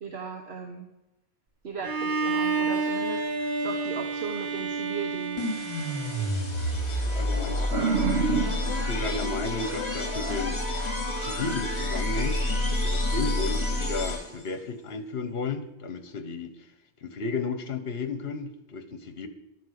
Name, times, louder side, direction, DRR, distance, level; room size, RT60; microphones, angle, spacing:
voice 1, 0.0-0.9 1.6-5.5 7.7-8.4, right 4 dB, 65° right, 3 dB, 1.4 m, -32 dB
Bowed string instrument, 1.8-6.9, right 4 dB, 50° right, 1.0 m, -30 dB
sound 1, 5.4-14.5, left 1 dB, 35° left, 2.8 m, -29 dB
voice 2, 7.1-7.9 8.9-10.6 11.2-16.5 17.0-19.3, left 3 dB, 60° left, 9 dB, 1.4 m, -33 dB
11.5 x 9.4 x 6.5 m, 0.93 s
omnidirectional pair, 1.2 m